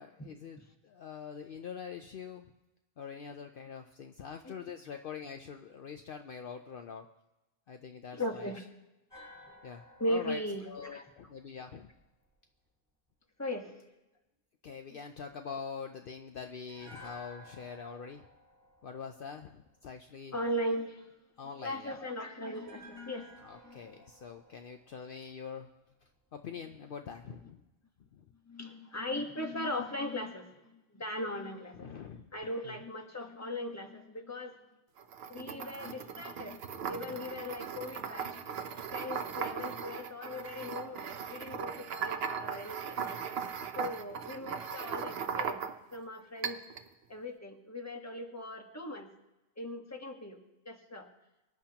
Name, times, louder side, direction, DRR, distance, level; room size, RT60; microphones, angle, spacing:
voice 1, 0.0-2.5 3.0-7.1 7.7-8.5 9.6-10.4 10.7-11.9 14.6-18.3 18.8-20.4 21.4-22.1 23.4-25.7 26.3-27.6 28.1-28.3 31.7-32.3 32.6-32.8, left 6 dB, 60° left, 5 dB, 0.8 m, -44 dB
voice 2, 8.2-8.6 10.0-11.0 13.4-13.8 14.9-15.0 20.3-21.1 21.6-23.8 28.5-32.0 32.3-34.5 35.3-36.6 36.9-38.4 38.9-43.2 43.7-45.6 45.9-46.6 47.1-49.1 49.6-50.4 50.6-51.1, left 1 dB, 15° left, 3 dB, 1.3 m, -38 dB
sound 1, 9.1-12.3 16.7-19.9 22.5-25.8 26.0-26.2, left 1 dB, 15° right, 3.7 m, -55 dB
sound 2, 35.0-46.0 46.4-46.9, right 6 dB, 65° right, 0.9 m, -38 dB
24.5 x 10.5 x 2.9 m, 1.0 s
omnidirectional pair, 1.1 m